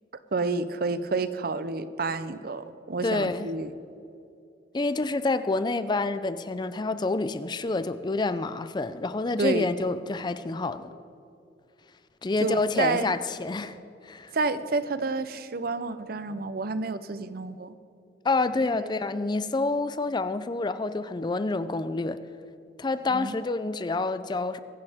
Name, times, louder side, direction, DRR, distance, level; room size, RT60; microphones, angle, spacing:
voice 1, 0.3-3.7 9.4-9.7 12.4-13.1 14.3-17.7 18.8-18.9 23.1-23.4, right 3 dB, 55° right, 0.6 m, -29 dB
voice 2, 3.0-3.5 4.7-10.9 12.2-13.8 14.0-14.3 18.2-22.2 22.8-24.6, left 3 dB, 25° left, 0.4 m, -28 dB
24.5 x 11.0 x 3.6 m
head